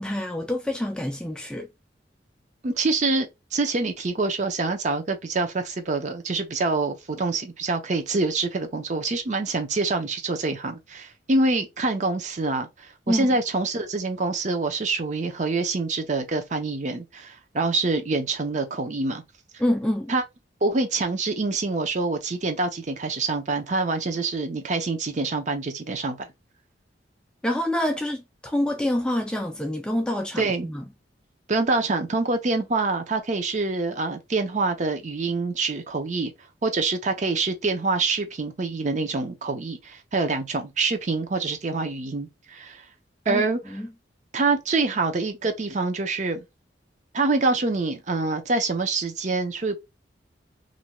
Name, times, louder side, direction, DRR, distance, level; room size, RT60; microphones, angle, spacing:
voice 1, 0.0-1.7 13.1-13.4 19.6-20.1 27.4-30.8 43.3-43.9, left 1 dB, 5° left, 0.3 m, -27 dB
voice 2, 2.6-19.2 20.1-20.2 20.6-26.3 30.4-30.7 31.5-36.3 36.6-42.8 43.3-43.6 44.3-46.4 47.1-49.8, right 3 dB, 40° right, 0.6 m, -26 dB
2.5 x 2.2 x 2.9 m
head